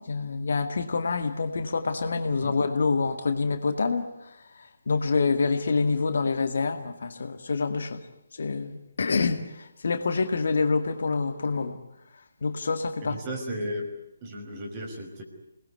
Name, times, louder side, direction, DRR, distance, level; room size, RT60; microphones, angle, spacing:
voice 1, 0.0-8.0 8.3-11.8 12.4-13.2, left 4 dB, 55° left, 2.1 m, -27 dB
voice 2, 13.0-13.9 14.2-15.2, equal, 25° right, 5.7 m, -34 dB
27.5 x 20.0 x 9.8 m
figure-of-eight pair, 145°, 0 cm